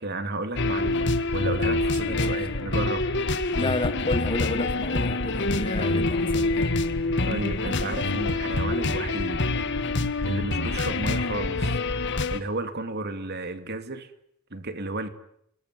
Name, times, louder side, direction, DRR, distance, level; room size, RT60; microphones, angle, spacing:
voice 1, 0.0-3.1 7.2-9.5 10.3-11.8 12.3-14.1 14.5-15.1, right 2 dB, 55° right, 2.6 m, -32 dB
sound 1, 0.6-12.4, left 2 dB, 60° left, 1.9 m, -26 dB
voice 2, 3.5-6.7, left 2 dB, 25° left, 1.5 m, -31 dB
29.5 x 21.0 x 9.8 m
head